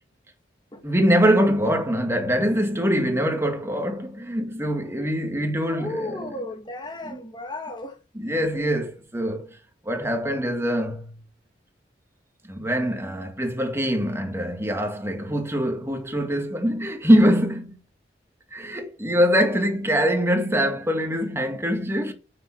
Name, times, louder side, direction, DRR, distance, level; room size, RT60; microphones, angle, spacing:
voice 1, 0.8-6.3 7.1-7.2 8.2-9.5 9.9-11.1 12.4-17.8 18.5-22.1, equal, 15° right, 2.0 m, -23 dB
voice 2, 5.6-8.0, left 2 dB, 25° left, 1.8 m, -34 dB
9.2 x 6.7 x 7.5 m
head